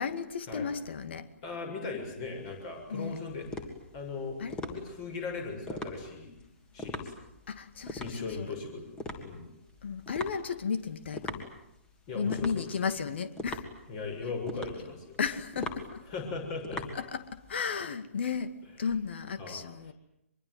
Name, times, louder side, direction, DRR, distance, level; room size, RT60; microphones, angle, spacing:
voice 1, 0.0-1.3 2.9-3.2 4.4-4.6 7.5-8.5 9.8-11.5 12.1-13.6 15.2-16.0 16.9-19.9, left 6 dB, 50° left, 11 dB, 2.2 m, -34 dB
voice 2, 1.4-3.5 3.9-6.3 6.7-7.1 8.0-9.5 12.1-12.7 13.9-15.2 16.1-16.8 19.4-19.6, left 4 dB, 30° left, 4 dB, 6.9 m, -38 dB
sound 1, 2.0-17.6, left 2 dB, 10° left, 3.0 m, -42 dB
24.5 x 23.0 x 9.4 m, 0.83 s
figure-of-eight pair, 130°, 8 cm